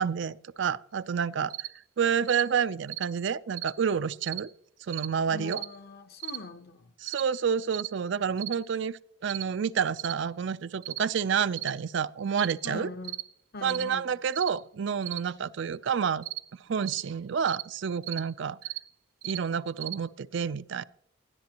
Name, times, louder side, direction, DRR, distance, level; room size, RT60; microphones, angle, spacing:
voice 1, 0.0-1.7 2.0-4.5 4.9-5.6 7.0-12.9 13.6-16.2 16.7-18.6 19.2-20.8, right 7 dB, 60° right, 0.4 m, -29 dB
sound 1, 1.5-1.7 2.3-2.5 2.9-3.1 3.5-3.8 4.2-4.5 4.9-5.1 5.5-5.7 6.2-6.4 7.0-7.3 7.7-7.9 8.4-8.6 9.3-9.5 10.0-10.2 10.8-11.0 11.5-11.8 12.4-12.6 13.0-13.3 13.7-13.9 14.3-14.5 15.0-15.2 16.2-16.4 16.8-17.0 17.5-17.7 18.0-18.3 18.6-18.8 19.2-19.4 19.8-20.0, right 17 dB, 85° right, 1.2 m, -36 dB
voice 2, 5.3-6.9 12.6-13.1 13.5-14.1, left 2 dB, 50° left, 0.9 m, -41 dB
19.5 x 13.0 x 2.9 m
head